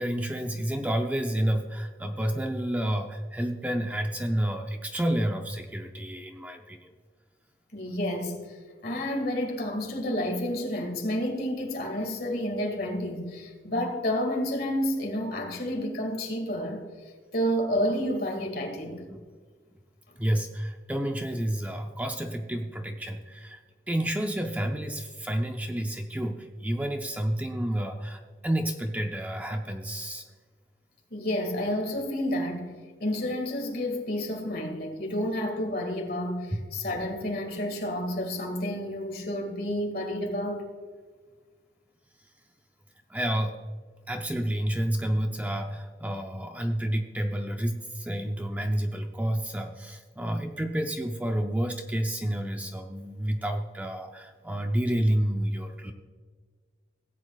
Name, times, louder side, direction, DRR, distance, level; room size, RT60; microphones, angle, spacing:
voice 1, 0.0-6.9 19.1-19.2 20.2-23.6 23.9-30.2 36.5-36.6 43.1-43.6 44.1-55.9, right 1 dB, 10° right, 0.5 m, -30 dB
voice 2, 7.7-8.4 8.8-16.8 17.3-19.0 31.1-32.7 33.0-40.6, equal, 55° left, 1.9 m, -30 dB
17.0 x 8.4 x 2.4 m
head